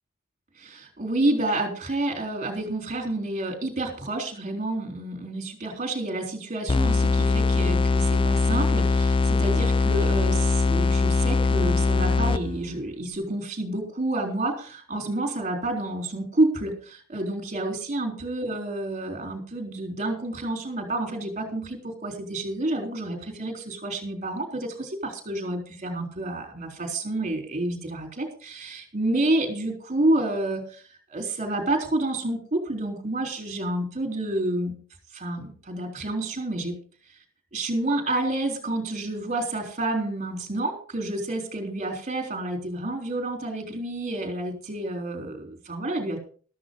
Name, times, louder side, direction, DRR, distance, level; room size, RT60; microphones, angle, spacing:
voice 1, 0.6-34.7 35.1-36.8 37.5-46.2, right 2 dB, 35° right, 4 dB, 3.7 m, -29 dB
sound 1, 6.7-12.7, left 3 dB, 25° left, 0.5 m, -22 dB
13.5 x 13.0 x 3.8 m, 0.41 s
head